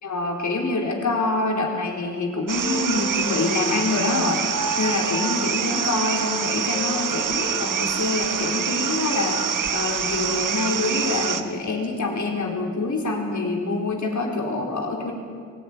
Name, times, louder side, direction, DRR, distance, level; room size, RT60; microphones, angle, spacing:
voice 1, 0.0-4.4 4.8-15.1, left 3 dB, 65° left, 0 dB, 4.5 m, -26 dB
sound 1, 2.5-11.4, right 7 dB, 85° right, 1.3 m, -26 dB
Wind instrument woodwind instrument, 2.6-7.7, left 1 dB, 25° left, 3.2 m, -35 dB
23.5 x 16.5 x 9.8 m, 2.2 s
wide cardioid pair, 115°, 31 cm